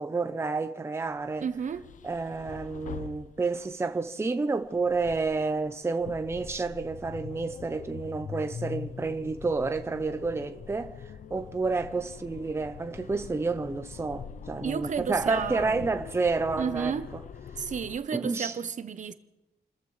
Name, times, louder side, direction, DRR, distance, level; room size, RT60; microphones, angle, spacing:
voice 1, 0.0-1.5 2.0-10.9 11.3-17.2 18.1-18.6, right 3 dB, 15° right, 0.7 m, -30 dB
sound 1, 1.3-3.9 4.6-18.0, left 7 dB, 50° left, 0.5 m, -43 dB
voice 2, 1.4-1.8 14.6-15.8 16.6-17.1 17.6-19.1, right 7 dB, 50° right, 0.8 m, -32 dB
29.5 x 14.0 x 3.3 m
wide cardioid pair, 165°, 17 cm